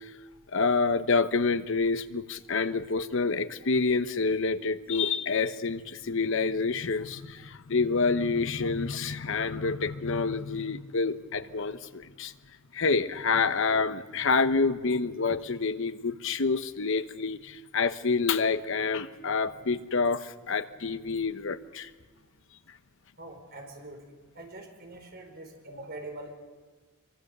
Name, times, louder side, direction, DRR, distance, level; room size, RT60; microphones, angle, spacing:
voice 1, 0.5-12.3 12.7-21.9, left 4 dB, 65° left, 11 dB, 1.0 m, -28 dB
voice 2, 23.2-24.0 24.3-26.3, right 2 dB, 50° right, 3 dB, 4.8 m, -43 dB
23.5 x 23.5 x 6.7 m, 1.4 s
head